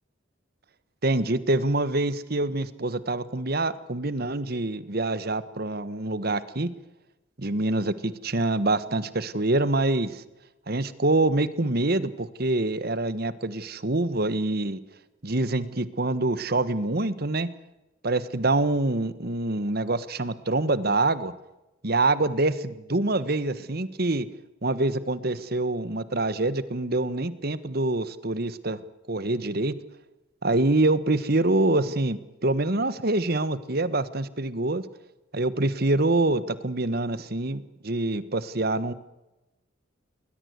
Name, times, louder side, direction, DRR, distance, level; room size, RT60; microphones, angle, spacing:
voice 1, 1.0-6.7 7.4-10.2 10.7-14.8 15.2-17.5 18.0-21.3 21.8-24.3 24.6-28.8 29.1-29.7 30.4-34.8 35.3-38.9, right 2 dB, 50° right, 16 dB, 1.4 m, -25 dB
21.0 x 20.0 x 8.1 m, 1.0 s
head